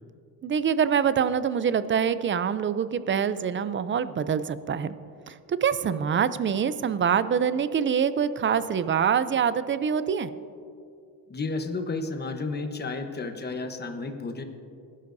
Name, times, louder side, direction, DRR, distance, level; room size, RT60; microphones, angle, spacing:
voice 1, 0.4-5.0 5.3-10.3, right 7 dB, 30° right, 14 dB, 0.5 m, -25 dB
voice 2, 11.3-14.4, left 3 dB, 25° left, 6 dB, 1.1 m, -32 dB
19.5 x 11.5 x 2.7 m, 2.5 s
cardioid pair, 100°, 39 cm